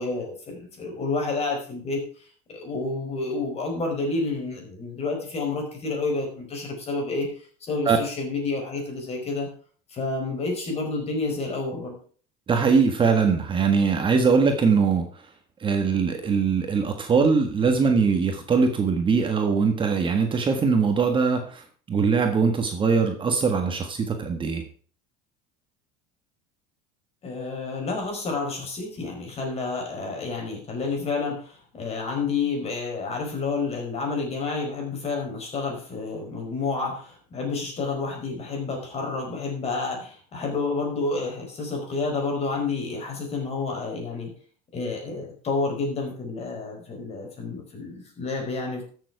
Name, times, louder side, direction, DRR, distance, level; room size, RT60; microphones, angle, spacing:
voice 1, 0.0-9.5 9.9-12.0 27.2-44.3 44.7-48.8, left 3 dB, 35° left, 1 dB, 4.8 m, -29 dB
voice 2, 12.5-15.2 15.6-24.6, right 5 dB, 25° right, 5 dB, 1.5 m, -22 dB
13.5 x 7.1 x 4.7 m, 0.44 s
supercardioid pair, 120°, 19 cm